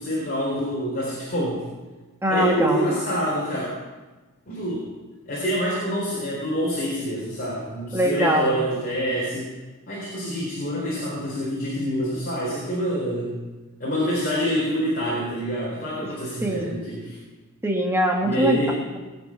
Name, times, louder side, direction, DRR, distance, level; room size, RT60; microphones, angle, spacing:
voice 1, 0.0-1.7 2.3-3.7 4.5-4.9 5.3-9.5 9.9-13.4 13.8-17.2 18.2-18.8, equal, 40° left, -5 dB, 3.9 m, -26 dB
voice 2, 2.2-2.8 7.9-8.5 16.4-16.8 17.6-18.6, equal, 10° right, 1 dB, 1.5 m, -22 dB
19.5 x 8.7 x 5.9 m, 1.2 s
head